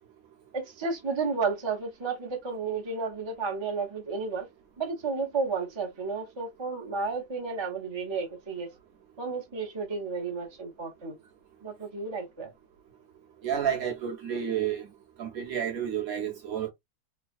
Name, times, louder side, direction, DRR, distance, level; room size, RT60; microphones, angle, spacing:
voice 1, 0.5-4.5 4.8-8.7 9.2-11.1 11.6-12.5, right 4 dB, 30° right, 0.5 m, -32 dB
voice 2, 13.4-14.9 15.2-16.7, right 9 dB, 60° right, 1.0 m, -30 dB
3.2 x 3.1 x 2.5 m
omnidirectional pair, 2.0 m